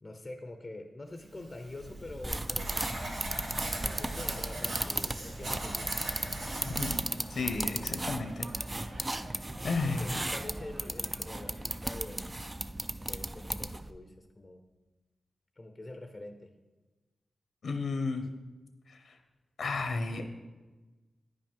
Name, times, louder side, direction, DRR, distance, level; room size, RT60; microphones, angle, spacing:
voice 1, 0.0-2.9 3.8-6.0 9.5-12.3 13.0-14.6 15.6-16.5, left 2 dB, 25° left, 5 dB, 0.6 m, -45 dB
Writing, 1.4-8.2, right 1 dB, 80° right, 2.8 m, -40 dB
sound 1, 2.2-13.9, right 1 dB, 15° right, 0.4 m, -36 dB
sound 2, 5.2-11.7, right 2 dB, 55° right, 0.9 m, -52 dB
voice 2, 6.6-7.0 7.3-8.5 8.8-10.2 17.6-18.3 18.9-19.2 19.6-20.2, left 3 dB, 70° left, 6 dB, 0.8 m, -34 dB
9.7 x 5.6 x 5.3 m, 1.2 s
wide cardioid pair, 130°, 0 cm